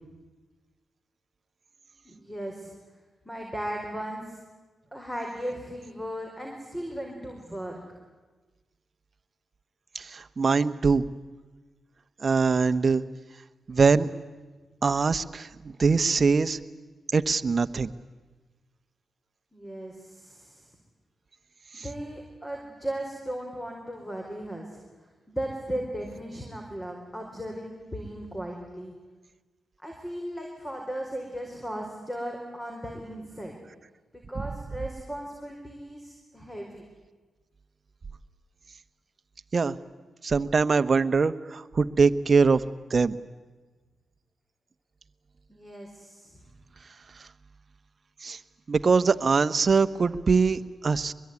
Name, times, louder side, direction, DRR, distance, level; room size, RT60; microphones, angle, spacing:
voice 1, 2.0-2.7 3.2-4.4 4.9-7.8 19.5-20.7 21.7-24.8 25.3-28.9 29.8-33.5 34.1-36.8 45.5-46.3, right 1 dB, 10° left, 2 dB, 4.9 m, -36 dB
voice 2, 9.9-11.1 12.2-13.0 13.7-14.1 14.8-16.6 17.1-17.9 39.5-39.8 40.2-42.6 42.9-43.2 48.2-48.4 48.7-51.1, right 4 dB, 50° right, 11 dB, 1.0 m, -23 dB
23.5 x 22.0 x 9.7 m, 1.3 s
cardioid pair, 60°, 0 cm